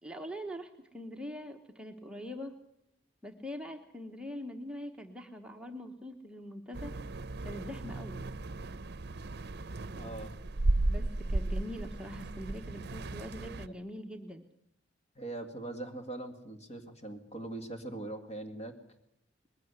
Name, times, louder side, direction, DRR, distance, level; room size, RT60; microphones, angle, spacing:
voice 1, 0.0-2.6 3.2-6.9 7.4-8.2 10.9-14.4, equal, 5° right, 2 dB, 1.1 m, -43 dB
sound 1, 6.7-13.7, right 2 dB, 60° right, 0.7 m, -35 dB
voice 2, 9.9-10.3 11.0-11.1 13.4-13.6 15.2-18.7, right 2 dB, 35° left, 5 dB, 2.0 m, -41 dB
20.5 x 15.5 x 8.0 m, 0.78 s
head